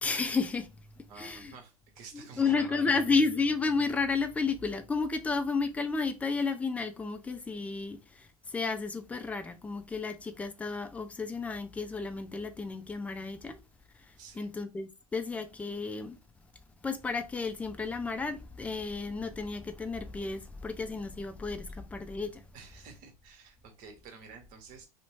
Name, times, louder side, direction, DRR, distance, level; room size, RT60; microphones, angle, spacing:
voice 1, 0.0-0.7 1.0-1.5 2.1-13.6 14.4-16.2 16.8-22.4, left 4 dB, 5° left, 0.3 m, -32 dB
voice 2, 1.1-3.0 14.2-14.5 22.5-24.9, right 5 dB, 45° right, 0.9 m, -50 dB
2.6 x 2.1 x 3.0 m
hypercardioid pair, 90°, 20 cm